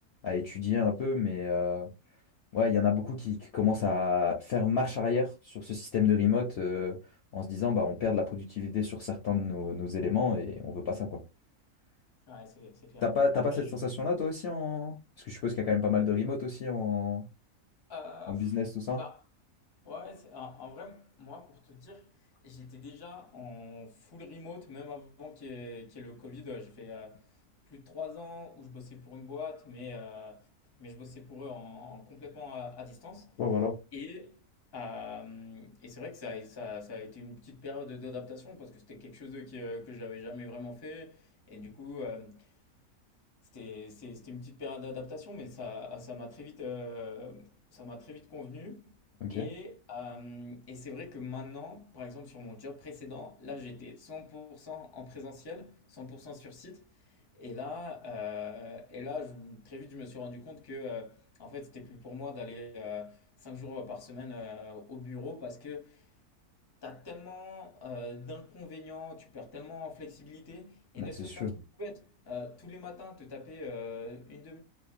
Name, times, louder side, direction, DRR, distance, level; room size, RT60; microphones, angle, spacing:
voice 1, 0.2-1.9 2.5-7.0 7.3-11.2 13.0-15.0 15.2-17.3 18.3-19.0 33.4-33.7 49.2-49.5 71.0-71.5, left 6 dB, 60° left, 0.7 m, -29 dB
voice 2, 12.3-13.0 13.3-13.8 15.6-15.8 17.9-18.6 19.0-19.2 19.8-27.3 27.7-30.5 30.8-33.4 33.9-34.4 34.7-42.5 43.5-49.0 49.3-66.1 66.8-74.6, left 4 dB, 25° left, 0.5 m, -43 dB
2.6 x 2.1 x 2.5 m
omnidirectional pair, 1.6 m